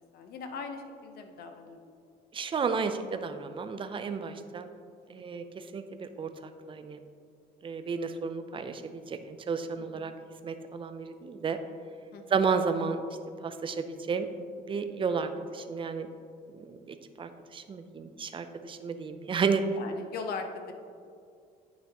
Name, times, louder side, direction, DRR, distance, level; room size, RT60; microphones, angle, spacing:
voice 1, 0.1-1.8 5.3-5.5 9.8-10.1 12.1-12.4 19.7-20.7, left 4 dB, 65° left, 6 dB, 0.9 m, -40 dB
voice 2, 2.3-4.7 5.1-5.4 5.7-6.3 6.7-7.0 7.6-10.1 10.4-11.6 12.3-13.0 13.4-14.3 14.7-16.1 16.6-19.6, right 5 dB, 30° right, 9 dB, 0.5 m, -32 dB
9.8 x 5.7 x 3.0 m, 2.3 s
cardioid pair, 110°, 17 cm